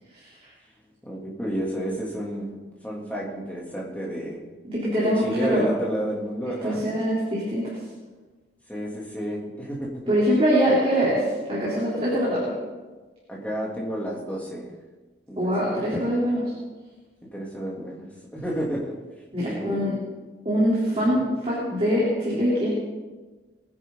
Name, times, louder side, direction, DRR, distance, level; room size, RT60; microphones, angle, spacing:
voice 1, 1.1-2.5 2.8-4.4 5.0-6.8 8.7-10.0 13.3-14.7 15.3-15.4 17.3-18.9 19.4-19.8 21.0-21.2, equal, 10° left, -4 dB, 3.0 m, -30 dB
voice 2, 4.6-5.7 6.6-7.7 10.1-12.5 15.4-16.5 19.3-20.0 20.5-22.7, equal, 30° right, -7 dB, 3.7 m, -23 dB
21.5 x 10.5 x 4.0 m, 1.3 s
head